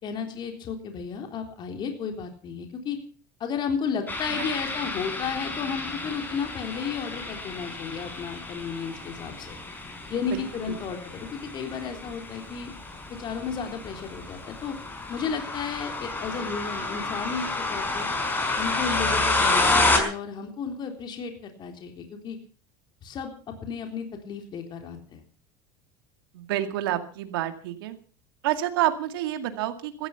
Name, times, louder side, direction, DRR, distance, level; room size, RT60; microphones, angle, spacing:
voice 1, 0.0-3.0 3.4-9.6 10.1-12.7 13.2-14.7 15.1-18.1 18.6-22.4 23.0-25.2, left 6 dB, 40° left, 4 dB, 3.7 m, -33 dB
sound 1, 4.1-20.0, left 2 dB, 15° left, 5.1 m, -30 dB
voice 2, 26.3-28.0 28.4-30.1, right 13 dB, 85° right, 8 dB, 2.3 m, -28 dB
16.0 x 13.5 x 5.8 m, 0.41 s
supercardioid pair, 115°, 11 cm